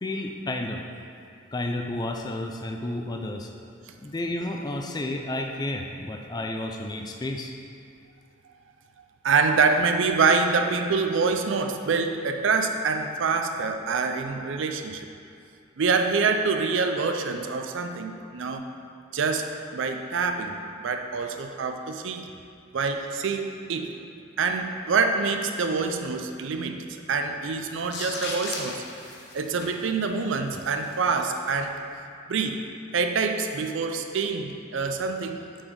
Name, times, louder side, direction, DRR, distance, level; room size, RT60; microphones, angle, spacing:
voice 1, 0.0-0.8 1.5-3.5 4.0-7.5, left 1 dB, 20° left, 3 dB, 0.3 m, -31 dB
voice 2, 9.2-15.0 15.8-18.7 19.1-22.3 22.7-23.9 24.4-28.8 29.3-31.8 32.3-32.6 32.9-35.4, right 4 dB, 65° right, 6 dB, 0.4 m, -26 dB
sound 1, 27.8-31.6, left 2 dB, 50° left, 0.8 m, -38 dB
6.2 x 4.1 x 4.7 m, 2.4 s
head